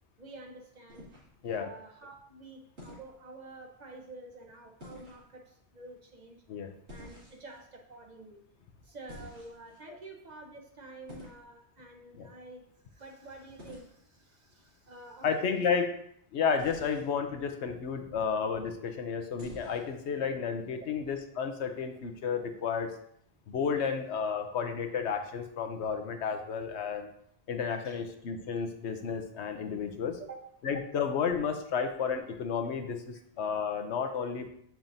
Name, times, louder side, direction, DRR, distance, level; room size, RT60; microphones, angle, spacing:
voice 1, 0.2-1.1 1.5-6.4 6.9-8.5 8.8-15.3 20.7-20.9 27.8-28.0 30.2-30.4, right 2 dB, 45° right, 2 dB, 0.8 m, -49 dB
sound 1, 0.9-1.6 2.8-3.1 4.8-5.2 6.9-7.6 9.1-9.8 11.1-11.4 13.6-13.9 16.6-17.1 19.4-19.9, equal, 80° right, 2.6 m, -49 dB
voice 2, 15.2-15.9 16.3-22.9 23.5-27.1 27.5-30.2 30.6-34.5, left 6 dB, 85° left, 6 dB, 1.0 m, -32 dB
7.1 x 5.9 x 2.6 m, 0.68 s
omnidirectional pair, 1.1 m